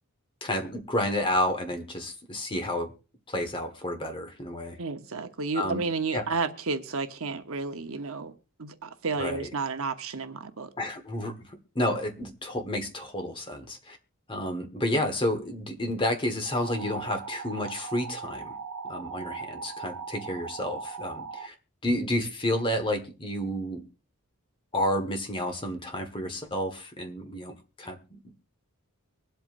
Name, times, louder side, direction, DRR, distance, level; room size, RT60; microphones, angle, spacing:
voice 1, 0.4-2.9 3.3-4.8 5.5-5.8 6.1-6.3 9.2-9.5 10.8-11.3 11.7-14.0 14.3-18.5 18.8-21.5 21.8-23.8 24.7-28.4, left 1 dB, 25° left, 1.5 m, -30 dB
voice 2, 4.8-8.3 8.6-10.7, right 4 dB, 65° right, 1.0 m, -31 dB
sound 1, 16.5-21.5, right 5 dB, 90° right, 0.6 m, -39 dB
24.0 x 8.0 x 2.6 m
head